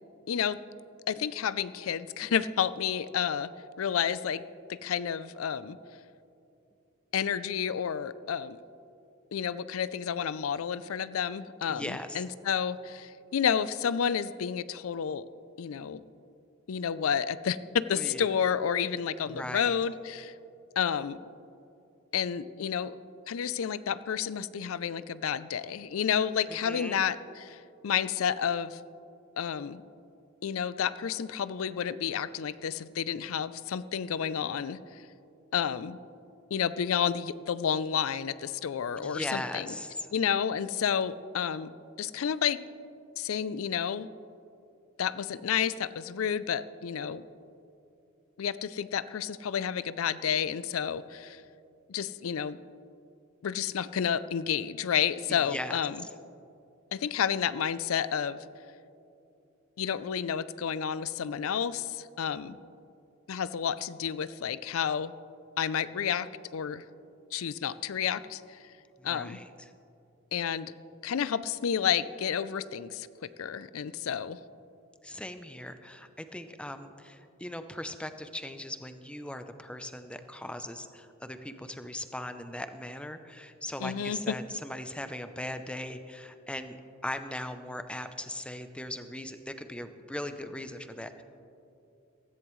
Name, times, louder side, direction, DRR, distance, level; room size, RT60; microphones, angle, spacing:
voice 1, 0.3-0.6 1.1-3.5 3.8-4.4 4.7-5.8 7.1-8.6 9.3-15.3 15.6-16.0 16.7-20.3 20.8-21.2 22.1-23.0 23.3-28.8 29.4-29.8 30.4-35.0 35.5-36.0 36.5-39.7 40.1-41.7 42.0-42.6 43.2-44.1 45.0-47.2 48.4-51.4 51.9-52.6 53.4-56.0 56.9-58.4 59.8-62.6 63.3-65.1 65.6-66.8 67.3-68.6 69.0-69.4 70.3-70.7 71.0-73.1 73.4-74.4 83.8-84.4, left 8 dB, 90° left, 16 dB, 0.4 m, -30 dB
voice 2, 11.7-12.2 18.0-18.2 19.2-19.7 26.5-27.0 39.0-40.1 55.3-55.8 69.0-69.7 75.0-86.8 87.0-91.2, left 1 dB, 5° left, 9 dB, 0.6 m, -39 dB
16.0 x 14.0 x 3.1 m, 2.7 s
head